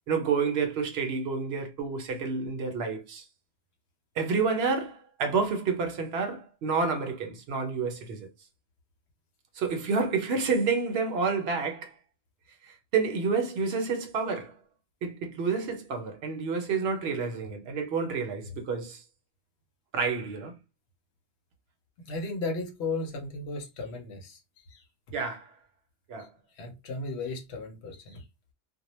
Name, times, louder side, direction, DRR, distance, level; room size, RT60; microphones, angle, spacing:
voice 1, 0.1-3.2 4.2-8.3 9.6-11.9 12.6-14.6 15.0-19.0 19.9-20.5 25.1-25.5 26.1-26.3, right 5 dB, 65° right, 0.8 m, -29 dB
voice 2, 22.1-24.4 24.7-24.8 26.6-28.2, left 3 dB, 70° left, 0.9 m, -35 dB
2.2 x 2.1 x 3.0 m
omnidirectional pair, 1.2 m